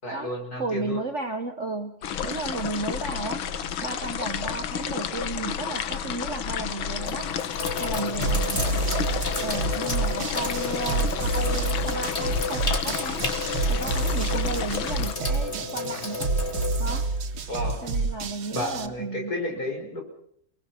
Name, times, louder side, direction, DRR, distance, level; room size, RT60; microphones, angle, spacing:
voice 1, 0.0-1.0 8.1-8.4 17.5-17.8 18.5-20.0, left 1 dB, 50° left, 2 dB, 6.5 m, -32 dB
voice 2, 0.6-3.4 3.8-7.3 7.8-8.9 9.4-13.4 13.7-16.3 16.8-17.1 17.8-19.3, right 3 dB, 40° right, 7 dB, 1.4 m, -34 dB
sound 1, 2.0-15.2, left 8 dB, 85° left, 2.0 m, -31 dB
Sink (filling or washing), 5.9-6.3 7.0-17.9, left 3 dB, 35° left, 3.0 m, -33 dB
sound 2, 8.2-18.9, right 3 dB, 90° right, 2.5 m, -29 dB
30.0 x 20.0 x 6.0 m, 0.68 s
omnidirectional pair, 2.2 m